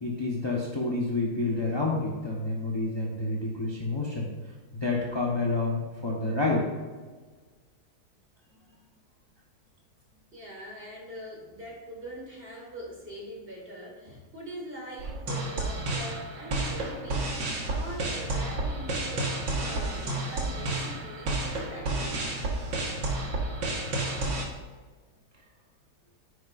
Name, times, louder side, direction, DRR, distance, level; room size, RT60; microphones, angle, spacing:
voice 1, 0.0-4.3 4.7-6.7, left 2 dB, 20° left, -3 dB, 0.9 m, -29 dB
voice 2, 10.3-17.3 17.6-19.3 19.6-22.4, equal, 30° right, -3 dB, 2.2 m, -43 dB
sound 1, 15.0-24.5, right 2 dB, 65° right, 2.1 m, -31 dB
9.9 x 9.8 x 2.6 m, 1.4 s
omnidirectional pair, 2.2 m